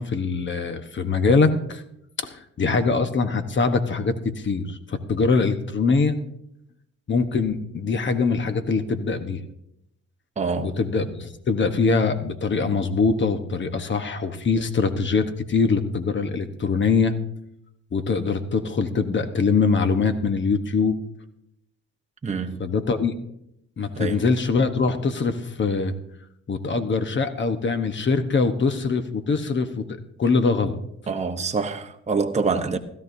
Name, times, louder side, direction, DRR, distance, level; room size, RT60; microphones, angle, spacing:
voice 1, 0.0-1.8 2.2-6.2 7.1-9.4 10.6-17.1 17.9-21.0 22.6-23.1 23.8-25.9 26.5-30.8, left 4 dB, 40° left, 1.1 m, -23 dB
voice 2, 10.4-10.8 22.2-22.7 24.0-24.2 31.1-32.8, right 4 dB, 20° right, 0.9 m, -26 dB
16.5 x 13.0 x 2.7 m
cardioid pair, 90°, 30 cm